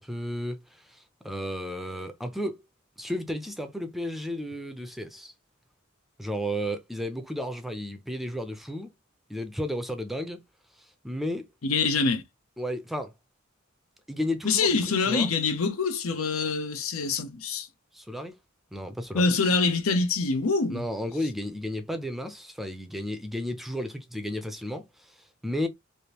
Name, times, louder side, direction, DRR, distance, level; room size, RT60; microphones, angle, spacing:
voice 1, 0.0-2.6 3.0-5.3 6.2-8.9 9.3-10.4 10.8-11.5 12.6-13.1 14.1-15.3 17.9-18.3 18.7-19.3 20.7-25.7, equal, ahead, 0.5 m, -33 dB
voice 2, 11.6-12.2 14.4-17.7 19.1-20.8, left 4 dB, 85° left, 0.7 m, -25 dB
3.4 x 2.6 x 2.9 m
head